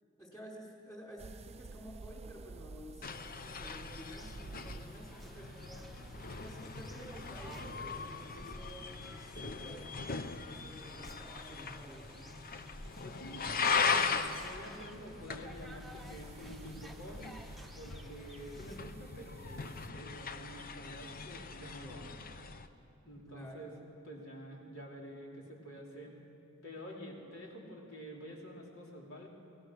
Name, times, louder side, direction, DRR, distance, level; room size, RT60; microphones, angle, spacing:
voice 1, 0.2-5.8 6.4-12.2 23.2-23.7, equal, 15° left, -2 dB, 4.9 m, -51 dB
sound 1, 1.2-19.9, right 3 dB, 30° right, 0.4 m, -54 dB
sound 2, 3.0-22.7, left 5 dB, 45° left, 0.9 m, -39 dB
sound 3, 4.2-18.8, equal, ahead, 0.9 m, -57 dB
voice 2, 13.0-17.4 17.7-19.7 19.9-22.2 23.0-23.7 24.0-26.2 26.6-29.3, equal, 70° left, -2 dB, 4.4 m, -48 dB
29.0 x 18.5 x 6.5 m, 2.6 s
head